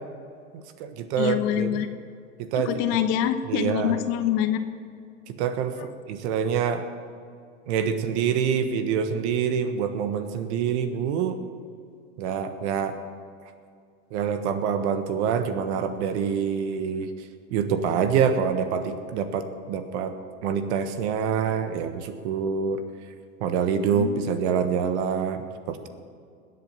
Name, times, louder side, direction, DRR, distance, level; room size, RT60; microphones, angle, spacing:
voice 1, 0.5-1.8 2.4-2.7 3.5-4.0 5.3-6.9 7.7-11.4 12.2-13.0 14.1-17.1 17.5-20.1 20.4-22.8 23.4-25.9, right 7 dB, 65° right, 9 dB, 1.5 m, -26 dB
voice 2, 1.2-1.9 2.6-4.6 23.9-24.2, left 10 dB, 55° left, 9 dB, 1.3 m, -25 dB
20.5 x 7.9 x 5.9 m, 2.3 s
hypercardioid pair, 100°, 37 cm